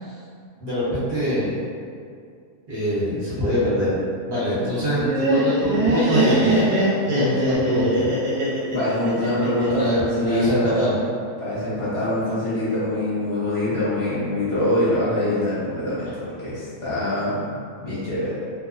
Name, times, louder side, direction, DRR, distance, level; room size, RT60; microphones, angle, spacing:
voice 1, 0.6-1.5 2.7-4.0 4.2-8.1 9.3-9.4 9.7-10.9, equal, 45° right, -11 dB, 0.9 m, -24 dB
Laughter, 4.8-9.9, right 1 dB, 75° right, 1.2 m, -21 dB
voice 2, 8.7-11.0 11.4-17.4 17.8-18.4, left 1 dB, 50° left, -12 dB, 1.0 m, -24 dB
2.7 x 2.0 x 2.4 m, 2.3 s
omnidirectional pair, 1.7 m